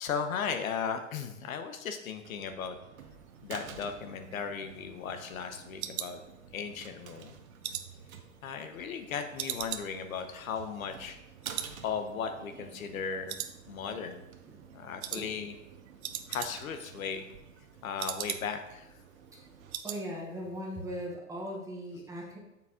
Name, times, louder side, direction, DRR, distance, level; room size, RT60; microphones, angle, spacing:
voice 1, 0.0-2.8 3.4-6.2 6.5-7.4 8.4-11.2 11.8-13.4 13.7-14.2 14.7-15.6 16.3-17.3 17.8-18.9, left 6 dB, 85° left, 8 dB, 0.9 m, -36 dB
sound 1, 2.2-19.8, right 7 dB, 85° right, 0.9 m, -52 dB
sound 2, 4.1-6.9 7.2-9.0 9.4-11.2 11.4-11.8 12.1-12.2 12.6-13.0 13.3-14.1 14.4-14.6 15.0-15.3 15.6-15.7 15.9-16.8 17.1-18.7 19.1-19.2 19.4-20.0 20.3-20.6 20.9-21.0, right 11 dB, 55° right, 0.5 m, -40 dB
voice 2, 19.8-22.4, equal, 10° right, -2 dB, 0.9 m, -39 dB
6.9 x 4.1 x 3.6 m, 0.92 s
hypercardioid pair, 140°, 40 cm